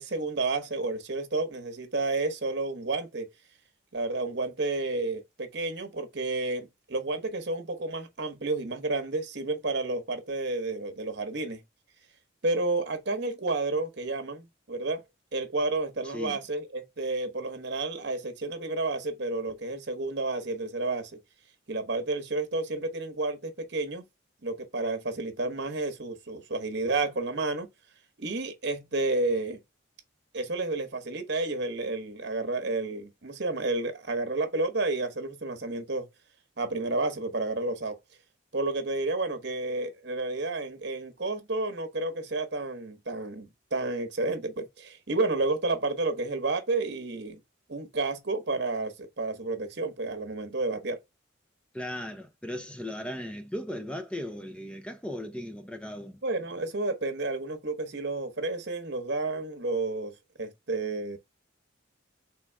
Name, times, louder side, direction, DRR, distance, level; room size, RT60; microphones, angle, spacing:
voice 1, 0.0-3.3 3.9-11.6 12.4-15.0 15.3-21.1 21.7-24.0 24.4-27.7 28.2-29.6 30.3-36.1 36.6-38.0 38.5-47.4 47.7-51.0 56.2-61.2, right 2 dB, 55° right, 1.0 m, -31 dB
voice 2, 51.7-56.2, left 1 dB, 5° left, 0.4 m, -37 dB
3.7 x 3.5 x 3.4 m
head